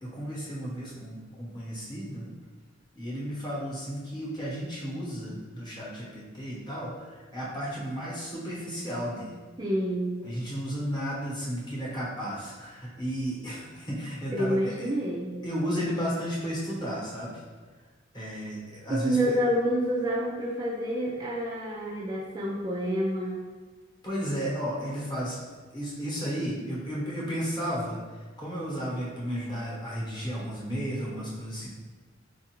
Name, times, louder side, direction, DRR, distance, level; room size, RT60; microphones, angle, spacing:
voice 1, 0.0-2.2 2.9-9.5 10.2-14.9 15.4-17.4 18.1-19.4 24.0-25.4 25.7-31.7, equal, 20° left, -6 dB, 0.9 m, -33 dB
voice 2, 9.6-10.2 14.3-15.4 18.9-23.4, equal, 20° right, -4 dB, 0.3 m, -28 dB
4.0 x 2.4 x 2.9 m, 1.4 s
head